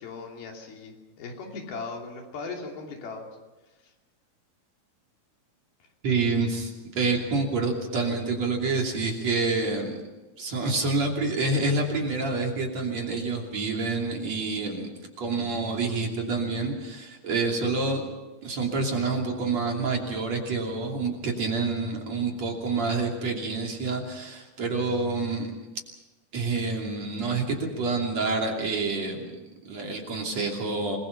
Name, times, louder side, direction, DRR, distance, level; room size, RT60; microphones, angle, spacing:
voice 1, 0.0-3.3 3.8-3.9, left 4 dB, 75° left, 1 dB, 4.8 m, -38 dB
voice 2, 6.0-10.0 10.4-14.9 15.2-18.1 18.4-25.5 26.3-31.0, right 3 dB, 45° right, 1 dB, 3.9 m, -28 dB
27.5 x 21.0 x 5.9 m, 1.2 s
omnidirectional pair, 4.4 m